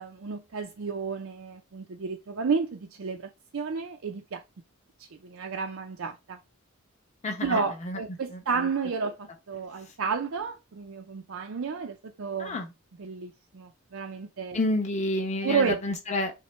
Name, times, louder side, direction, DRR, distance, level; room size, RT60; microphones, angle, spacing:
voice 1, 0.0-4.4 5.0-6.4 7.4-12.6 13.0-14.6 15.4-15.8, right 5 dB, 65° right, 0.5 m, -31 dB
voice 2, 7.2-8.0 8.3-8.7 12.4-12.7 14.5-16.3, left 1 dB, 30° left, 1.0 m, -30 dB
5.8 x 2.2 x 4.3 m
head